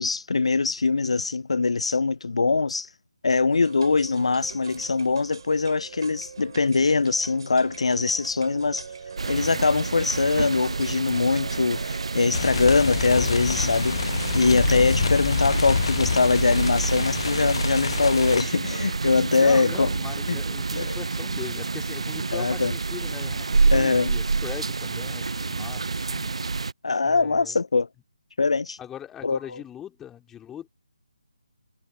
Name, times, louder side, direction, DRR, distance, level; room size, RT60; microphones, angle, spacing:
voice 1, 0.0-2.9 3.2-8.9 9.3-14.0 14.3-19.9 20.3-20.4 20.8-21.0 22.3-22.7 23.7-24.1 26.8-27.9 28.4-28.8 29.2-29.6, left 4 dB, 70° left, 0.3 m, -22 dB
sound 1, 3.5-14.9, right 6 dB, 50° right, 3.4 m, -42 dB
sound 2, 9.2-26.7, right 4 dB, 70° right, 0.4 m, -28 dB
sound 3, 12.3-18.4, left 5 dB, 55° left, 0.9 m, -27 dB
voice 2, 19.3-26.3 27.0-27.6 28.8-30.7, left 10 dB, 10° left, 2.7 m, -41 dB
figure-of-eight pair, 155°, 3 cm